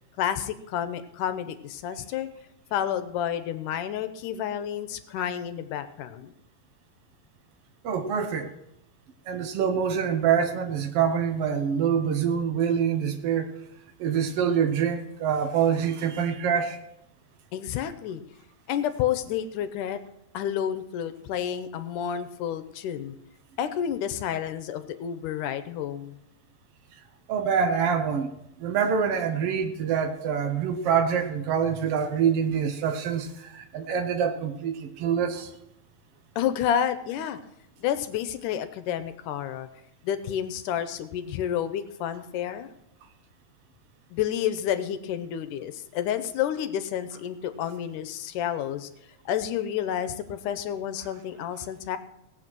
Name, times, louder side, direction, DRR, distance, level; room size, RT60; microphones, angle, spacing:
voice 1, 0.2-2.3 2.7-6.3 17.5-18.2 18.7-20.0 20.3-23.2 23.6-26.2 36.4-37.4 37.8-39.7 40.0-42.7 44.1-48.9 49.3-52.0, left 9 dB, 75° left, 11 dB, 2.2 m, -30 dB
voice 2, 7.8-8.5 9.3-13.5 14.0-16.8 27.3-28.3 28.6-35.5, right 7 dB, 85° right, 6 dB, 1.3 m, -25 dB
18.0 x 8.1 x 6.1 m, 0.82 s
omnidirectional pair, 4.0 m